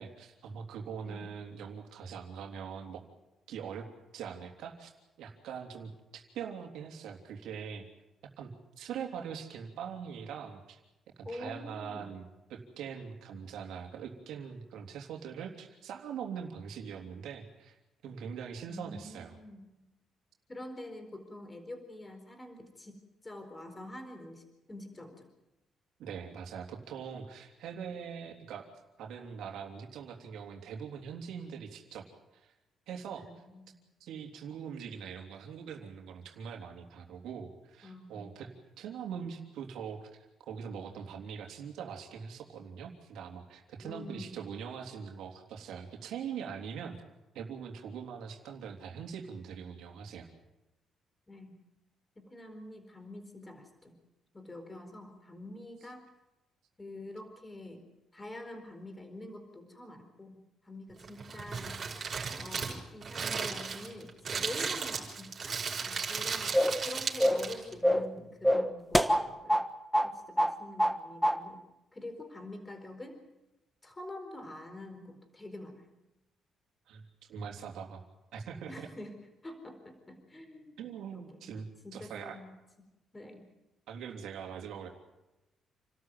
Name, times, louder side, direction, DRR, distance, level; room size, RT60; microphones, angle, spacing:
voice 1, 0.0-3.0 3.5-3.9 4.1-4.9 5.2-7.8 8.4-8.5 8.8-10.8 11.2-17.8 18.0-19.4 26.0-28.7 29.0-32.1 32.3-32.5 32.9-33.3 34.0-38.5 38.8-47.0 47.4-50.3 76.9-77.0 77.3-78.0 78.3-78.9 80.8-81.7 81.9-82.4 83.9-84.9, right 7 dB, 85° right, 3 dB, 3.3 m, -42 dB
voice 2, 11.2-12.1 18.7-19.9 20.5-24.4 24.7-25.3 33.2-33.7 37.8-38.5 43.8-44.4 51.3-51.6 52.2-53.9 54.3-56.1 56.8-57.8 58.1-61.9 62.4-69.6 70.0-73.2 73.8-75.9 78.7-80.8 81.1-81.5 81.8-82.9 83.1-83.4, left 1 dB, 20° left, 7 dB, 4.3 m, -46 dB
Crumpling crinkling, 61.0-67.7, right 5 dB, 45° right, 5.8 m, -36 dB
sound 1, 66.5-66.8 67.2-67.5 67.8-68.1 68.4-69.7 69.9-70.1 70.4-71.0 71.2-71.4, equal, ahead, 1.4 m, -25 dB
28.5 x 13.0 x 9.3 m, 0.99 s
cardioid pair, 90°, 0 cm